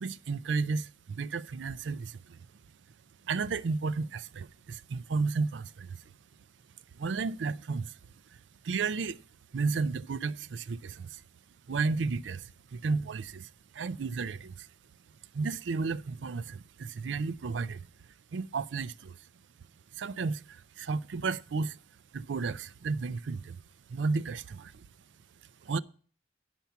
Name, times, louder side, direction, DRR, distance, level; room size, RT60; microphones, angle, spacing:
voice 1, 0.0-2.4 3.2-6.0 6.9-7.9 8.6-9.2 9.5-11.2 11.7-14.7 15.3-17.9 18.3-19.3 19.9-21.8 22.1-23.6 23.9-24.9 25.6-25.8, right 4 dB, 85° right, 0.5 m, -33 dB
10.5 x 5.9 x 6.8 m
head